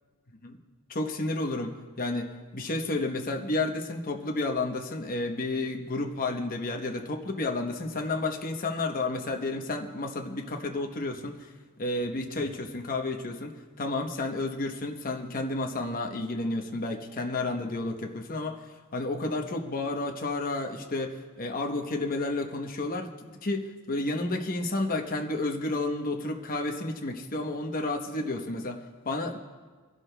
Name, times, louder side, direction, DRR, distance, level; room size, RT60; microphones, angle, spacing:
voice 1, 0.9-1.7 2.0-11.5 11.8-18.6 18.9-29.4, left 2 dB, 40° left, 3 dB, 0.9 m, -31 dB
27.5 x 11.5 x 2.2 m, 1.5 s
head